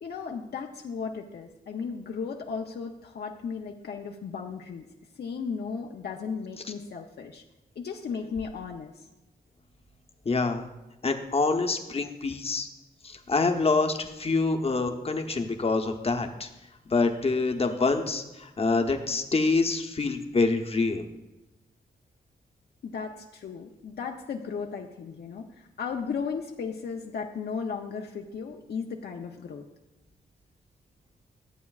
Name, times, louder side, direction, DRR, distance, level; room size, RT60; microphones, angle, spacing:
voice 1, 0.0-4.9 5.1-7.4 7.8-9.0 22.8-29.6, left 5 dB, 70° left, 1 dB, 0.6 m, -35 dB
voice 2, 10.3-10.6 11.0-12.7 13.0-16.5 16.9-21.0, left 3 dB, 35° left, 6 dB, 0.8 m, -26 dB
13.5 x 8.1 x 2.4 m, 1.0 s
wide cardioid pair, 95°, 17 cm